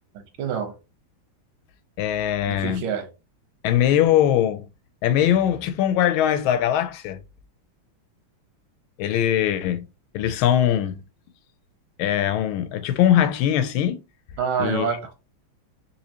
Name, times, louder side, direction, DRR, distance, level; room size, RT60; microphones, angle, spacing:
voice 1, 0.2-0.7 2.5-3.1 14.4-15.1, right 6 dB, 90° right, 1.7 m, -27 dB
voice 2, 2.0-2.8 3.6-4.6 5.0-7.2 9.0-9.9 10.1-11.0 12.0-14.0 14.6-15.0, left 11 dB, 85° left, 1.4 m, -21 dB
4.2 x 2.7 x 2.8 m
omnidirectional pair, 2.2 m